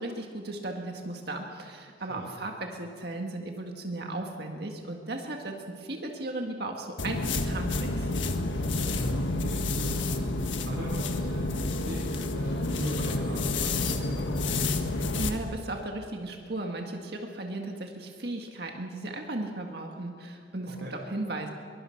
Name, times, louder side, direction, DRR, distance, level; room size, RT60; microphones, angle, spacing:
voice 1, 0.0-8.1 15.2-21.5, right 2 dB, 55° right, 2 dB, 1.8 m, -36 dB
sound 1, 7.0-15.4, left 2 dB, 80° left, 1.6 m, -29 dB
voice 2, 8.8-14.6 20.6-20.9, equal, 80° right, -6 dB, 4.8 m, -40 dB
23.0 x 23.0 x 5.9 m, 2.2 s
head